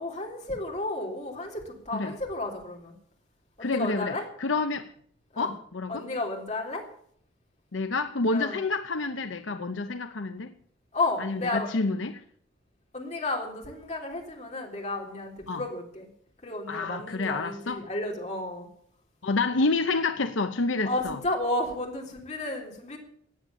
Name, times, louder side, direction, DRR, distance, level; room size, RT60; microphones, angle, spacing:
voice 1, 0.0-2.9 3.6-4.2 5.3-5.5 5.9-6.8 8.3-8.6 10.9-11.7 12.9-16.1 16.4-18.7 20.8-23.0, left 2 dB, 35° left, 3.6 m, -32 dB
voice 2, 3.6-4.9 5.4-6.1 7.7-10.5 11.2-12.2 15.5-15.6 16.7-17.9 19.2-21.2, left 3 dB, 80° left, 0.8 m, -28 dB
14.5 x 9.1 x 8.7 m
head